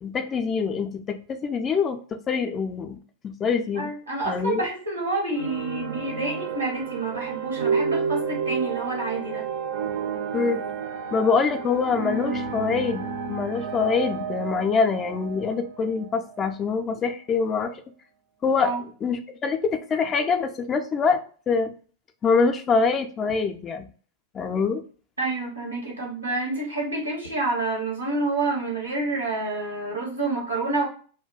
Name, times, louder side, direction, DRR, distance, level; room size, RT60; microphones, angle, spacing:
voice 1, 0.0-3.0 3.2-3.9 4.2-4.6 10.3-10.6 11.1-17.8 18.4-18.7 19.0-21.2 21.5-21.7 22.2-23.8 24.3-24.8, left 5 dB, 25° left, 7 dB, 0.3 m, -24 dB
voice 2, 3.7-9.5 11.2-11.3 11.6-11.8 18.6-18.8 25.2-30.9, right 2 dB, 85° right, -1 dB, 0.7 m, -28 dB
sound 1, 5.3-16.6, right 6 dB, 50° right, 0.4 m, -31 dB
2.2 x 2.2 x 3.7 m, 0.42 s
figure-of-eight pair, 90°, 0 cm